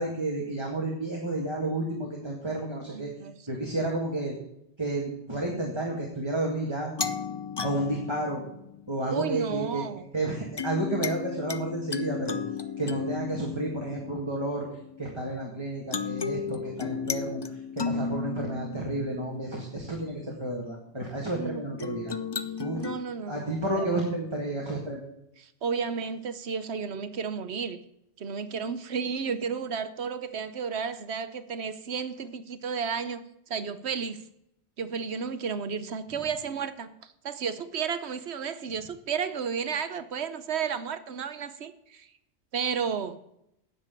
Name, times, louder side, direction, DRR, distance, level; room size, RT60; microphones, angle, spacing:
voice 1, 0.0-3.1 3.5-4.4 4.8-6.9 7.6-8.4 8.9-9.8 10.1-12.4 12.8-14.7 15.0-22.1 22.6-22.8 23.3-25.0, right 2 dB, 25° right, -1 dB, 2.0 m, -31 dB
voice 2, 2.9-3.3 9.1-10.0 21.3-21.6 22.8-23.9 25.6-27.8 28.2-33.2 33.5-34.2 34.8-42.1 42.5-43.2, right 6 dB, 70° right, 12 dB, 1.1 m, -32 dB
sound 1, 7.0-9.2 10.6-15.4 15.9-20.1 21.8-23.0, left 5 dB, 35° left, 0.4 m, -34 dB
9.8 x 7.6 x 8.4 m, 0.80 s
omnidirectional pair, 1.2 m